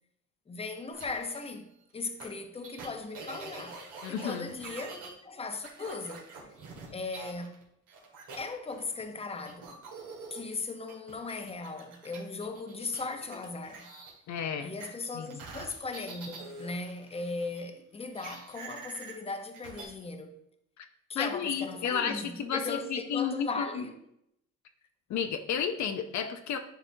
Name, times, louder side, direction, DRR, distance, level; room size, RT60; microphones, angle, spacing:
voice 1, 0.5-1.7 1.9-3.8 4.1-5.0 5.2-6.3 6.9-7.6 8.4-9.7 10.3-13.9 14.6-20.4 21.1-24.0, left 3 dB, 20° left, 0.7 m, -38 dB
sound 1, 0.9-1.4 2.2-2.3 2.6-5.1 5.6-7.6 7.9-9.0 9.4-14.1 14.8-17.6 18.1-19.8, right 4 dB, 85° right, 2.0 m, -46 dB
voice 2, 4.0-4.5 14.3-14.7 15.1-15.4 20.8-20.9 21.1-23.8 25.1-26.6, left 7 dB, 70° left, 0.6 m, -32 dB
9.9 x 4.1 x 2.7 m
cardioid pair, 90°, 30 cm